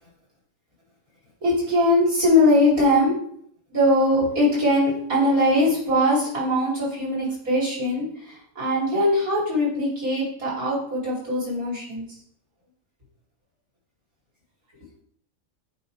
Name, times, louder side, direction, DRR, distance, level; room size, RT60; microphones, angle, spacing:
voice 1, 1.4-3.1 3.7-12.0, left 1 dB, 85° right, -6 dB, 3.2 m, -21 dB
8.4 x 2.9 x 4.6 m, 0.64 s
omnidirectional pair, 1.5 m